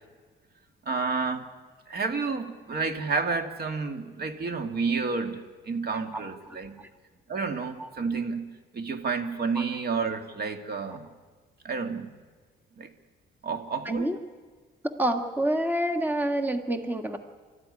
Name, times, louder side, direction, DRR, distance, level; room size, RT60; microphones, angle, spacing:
voice 1, 0.9-1.5 1.9-6.7 7.3-11.1 11.6-12.1 12.8-12.9 13.4-14.1, right 4 dB, 50° right, 6 dB, 2.1 m, -30 dB
voice 2, 13.8-14.2 15.0-17.2, right 1 dB, 10° right, 5 dB, 1.7 m, -27 dB
25.0 x 14.0 x 9.9 m, 1.5 s
cardioid pair, 90°, 20 cm